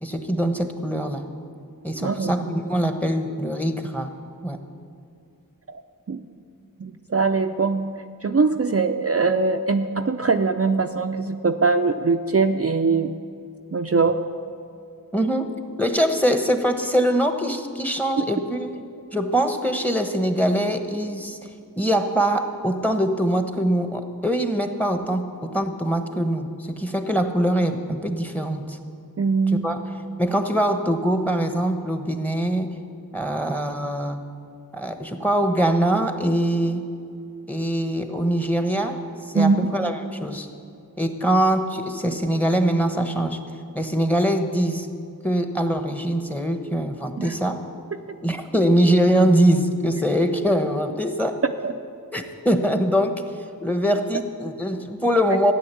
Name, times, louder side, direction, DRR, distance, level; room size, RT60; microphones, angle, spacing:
voice 1, 0.0-1.3 1.8-4.1 4.4-4.6 15.1-15.5 15.8-18.8 19.1-28.8 29.5-29.8 30.2-32.7 33.1-34.2 34.7-36.9 37.5-40.5 41.0-43.4 43.7-44.9 45.2-47.6 48.2-51.4 52.1-55.5, right 1 dB, 5° left, 7 dB, 1.2 m, -23 dB
voice 2, 2.0-2.6 5.7-5.8 6.1-6.2 6.8-8.0 8.2-13.1 13.7-14.2 29.2-29.6 39.3-39.7 47.2-47.3 51.6-51.7, right 4 dB, 45° right, 5 dB, 0.5 m, -22 dB
14.5 x 9.6 x 8.4 m, 2.4 s
wide cardioid pair, 55°, 35 cm